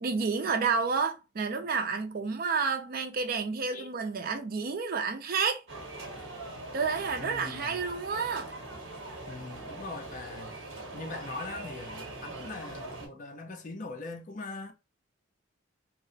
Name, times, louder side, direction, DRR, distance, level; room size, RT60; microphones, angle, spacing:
voice 1, 0.0-5.6 6.7-8.5, right 5 dB, 45° right, 0.4 m, -30 dB
sound 1, 5.7-13.1, right 2 dB, 65° right, 0.9 m, -42 dB
voice 2, 7.2-7.8 9.3-10.5 10.9-14.7, left 3 dB, 40° left, 0.4 m, -41 dB
2.8 x 2.0 x 2.6 m
head